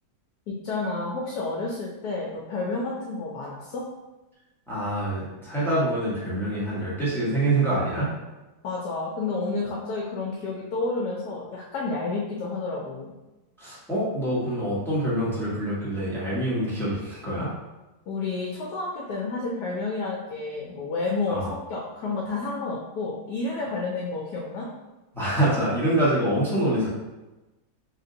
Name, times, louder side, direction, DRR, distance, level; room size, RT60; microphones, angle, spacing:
voice 1, 0.6-3.8 8.6-13.1 18.1-24.7, left 3 dB, 70° left, -3 dB, 1.1 m, -30 dB
voice 2, 4.7-8.1 13.6-17.5 21.3-21.5 25.1-26.9, right 1 dB, ahead, -9 dB, 1.1 m, -25 dB
3.6 x 2.5 x 3.8 m, 1.1 s
omnidirectional pair, 1.9 m